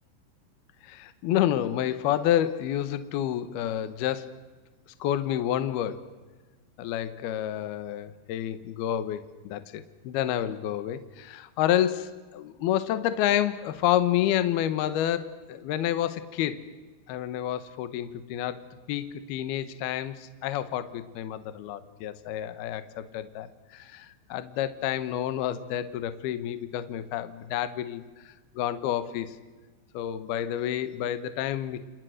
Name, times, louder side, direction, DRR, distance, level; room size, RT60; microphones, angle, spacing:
voice 1, 0.8-4.4 5.0-6.1 6.8-16.7 17.1-29.3 29.9-31.8, left 11 dB, 70° left, 12 dB, 2.5 m, -29 dB
30.0 x 28.5 x 6.6 m, 1.3 s
omnidirectional pair, 6.0 m